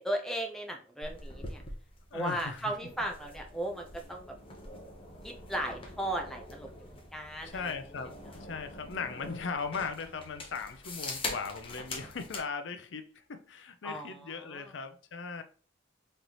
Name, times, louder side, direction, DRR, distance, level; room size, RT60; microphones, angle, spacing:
voice 1, 0.0-1.6 2.1-4.4 5.2-7.7 13.8-14.7, right 1 dB, ahead, 0.6 m, -36 dB
sound 1, 1.0-12.5, left 2 dB, 30° left, 0.9 m, -44 dB
voice 2, 2.1-2.7 7.4-15.4, left 5 dB, 70° left, 0.5 m, -38 dB
3.9 x 3.2 x 2.9 m
head